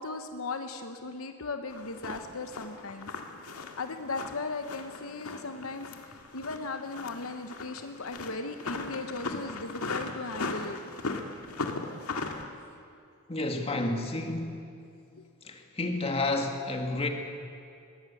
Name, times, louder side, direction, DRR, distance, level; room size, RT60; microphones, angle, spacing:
voice 1, 0.0-3.1 3.8-10.8 15.2-15.3, left 3 dB, 70° left, 7 dB, 1.1 m, -37 dB
sound 1, 1.7-12.4, left 3 dB, 85° left, 1.9 m, -38 dB
voice 2, 13.3-14.7 15.4-17.1, left 2 dB, 25° left, 4 dB, 2.0 m, -30 dB
21.0 x 17.5 x 8.5 m, 2.5 s
head